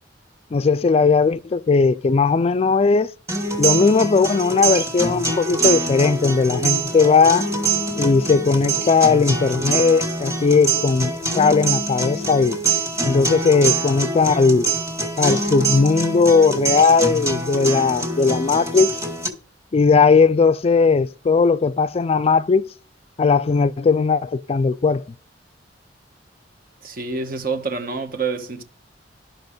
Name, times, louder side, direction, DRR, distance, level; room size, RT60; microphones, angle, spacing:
voice 1, 0.5-3.1 3.6-7.5 8.0-12.6 13.0-14.7 15.2-19.0 19.7-22.7 23.2-25.0, left 4 dB, 35° left, 0.4 m, -18 dB
sound 1, 3.3-19.3, right 3 dB, 15° right, 2.0 m, -24 dB
voice 2, 26.8-28.6, right 4 dB, 55° right, 1.3 m, -27 dB
12.0 x 6.1 x 5.1 m
head